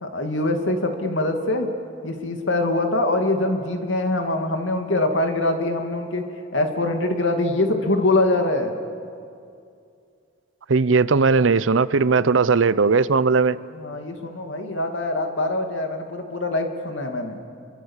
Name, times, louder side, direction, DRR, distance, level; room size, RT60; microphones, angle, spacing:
voice 1, 0.0-1.7 2.0-6.2 6.5-8.8 13.7-17.4, left 2 dB, 75° left, 2.4 m, -23 dB
voice 2, 10.7-13.6, right 4 dB, 85° right, 0.6 m, -18 dB
28.0 x 23.5 x 7.3 m
head